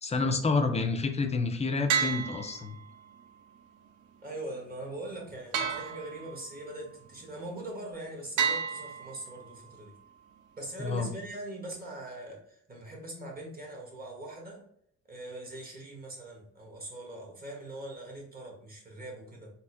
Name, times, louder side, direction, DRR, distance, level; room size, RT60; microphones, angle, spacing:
voice 1, 0.0-2.8 10.8-11.1, left 3 dB, 20° left, 6 dB, 0.5 m, -29 dB
sound 1, 1.9-3.1 5.5-6.6 8.4-9.6, right 6 dB, 85° right, 0.5 m, -31 dB
voice 2, 4.2-10.0 10.6-14.6 15.1-19.5, right 1 dB, 30° right, -1 dB, 1.2 m, -42 dB
4.1 x 2.0 x 2.6 m, 0.68 s
cardioid pair, 90°, 30 cm